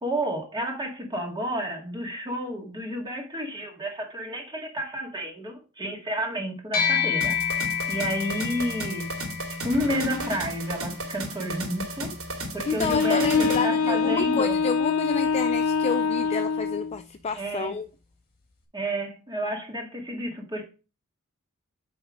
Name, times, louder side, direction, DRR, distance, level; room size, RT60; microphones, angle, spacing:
voice 1, 0.0-9.1 9.6-12.1 12.5-14.6 17.3-17.8 18.7-20.6, equal, 20° right, 2.0 m, -31 dB
sound 1, 6.7-16.3, left 7 dB, 45° left, 2.2 m, -32 dB
sound 2, 7.2-13.7, right 1 dB, 70° right, 2.5 m, -34 dB
voice 2, 12.7-17.9, left 5 dB, 30° left, 0.3 m, -29 dB
Wind instrument woodwind instrument, 12.9-17.0, left 5 dB, 85° left, 0.6 m, -24 dB
9.1 x 3.5 x 5.0 m
head